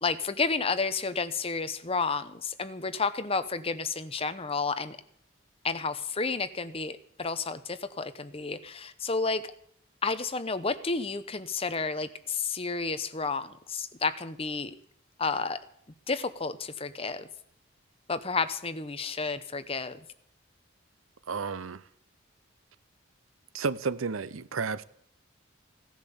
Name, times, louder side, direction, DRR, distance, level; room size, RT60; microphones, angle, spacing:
voice 1, 0.0-5.0 5.6-9.4 10.0-14.7 15.2-15.6 16.1-17.3 18.1-20.0, left 4 dB, 30° left, 0.8 m, -31 dB
voice 2, 21.3-21.8 23.5-24.8, right 5 dB, 90° right, 0.7 m, -32 dB
16.5 x 10.5 x 7.1 m
head